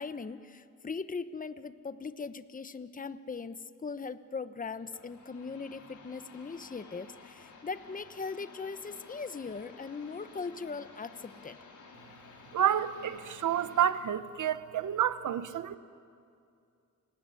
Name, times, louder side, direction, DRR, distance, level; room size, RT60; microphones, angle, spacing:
voice 1, 0.0-11.6, left 4 dB, 25° left, 12 dB, 1.0 m, -40 dB
sound 1, 4.8-13.9, left 4 dB, 65° left, 4.1 m, -53 dB
voice 2, 12.5-15.8, right 10 dB, 70° right, 13 dB, 1.0 m, -29 dB
29.5 x 20.0 x 9.9 m, 2.4 s
cardioid pair, 90°, 32 cm